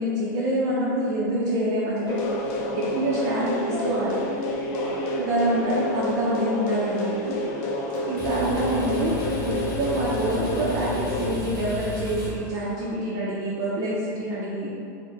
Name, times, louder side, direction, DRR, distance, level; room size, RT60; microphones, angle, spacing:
voice 1, 0.0-2.2 2.5-3.5 3.8-4.2 5.2-7.4 8.0-14.7, right 1 dB, 40° right, -6 dB, 0.5 m, -26 dB
sound 1, 2.1-11.4, left 1 dB, 50° left, 0.5 m, -29 dB
voice 2, 3.4-5.8 13.0-13.4, right 1 dB, 5° right, -9 dB, 1.2 m, -39 dB
sound 2, 7.9-13.1, left 4 dB, 20° left, 0.8 m, -34 dB
4.5 x 2.1 x 3.2 m, 2.5 s
supercardioid pair, 150°, 10 cm